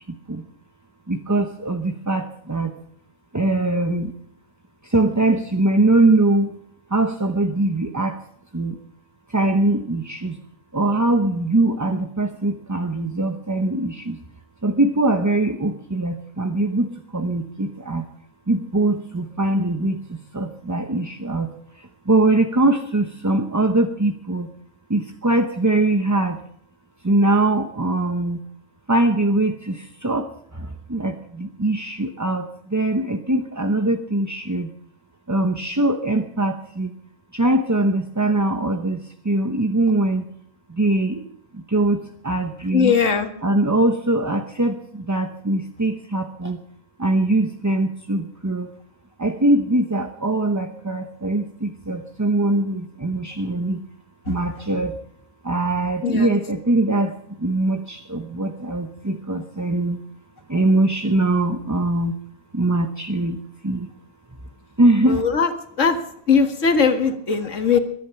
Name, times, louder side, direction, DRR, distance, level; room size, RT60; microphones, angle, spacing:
voice 1, 0.1-0.4 1.1-2.7 3.3-4.1 4.8-6.5 6.9-8.2 8.5-8.8 9.3-10.4 10.7-14.2 14.6-18.1 18.5-21.5 21.7-24.5 24.9-26.4 27.0-28.4 28.9-34.7 35.3-36.9 37.3-40.3 40.7-41.3 41.5-42.9 43.4-46.6 47.0-48.7 49.2-53.8 54.3-55.0 55.4-60.0 60.5-62.2 62.5-63.9 64.8-65.2, right 2 dB, 15° right, 5 dB, 0.7 m, -22 dB
voice 2, 42.7-43.3 56.0-56.3 65.1-65.5 65.8-66.0 66.3-67.8, left 6 dB, 70° left, 7 dB, 2.1 m, -19 dB
22.0 x 11.5 x 5.8 m, 0.69 s
omnidirectional pair, 1.4 m